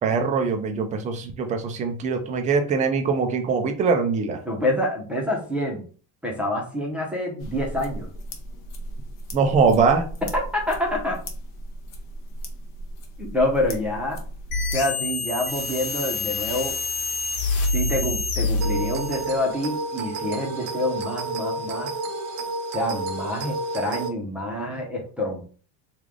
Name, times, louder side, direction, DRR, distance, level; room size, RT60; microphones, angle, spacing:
voice 1, 0.0-4.4 9.3-10.0, right 5 dB, 20° right, 5 dB, 0.3 m, -22 dB
voice 2, 4.4-5.8 6.2-8.1 10.3-11.2 13.2-14.2 14.7-16.8 17.7-21.9 22.7-25.4, left 1 dB, 5° right, -3 dB, 0.7 m, -27 dB
sound 1, 7.4-14.7, right 1 dB, 45° left, 0.8 m, -36 dB
sound 2, 14.5-19.4, left 3 dB, 60° left, 1.4 m, -26 dB
sound 3, 18.6-24.1, right 2 dB, 90° right, 0.9 m, -30 dB
3.2 x 2.4 x 3.6 m, 0.41 s
cardioid pair, 130°, 45 cm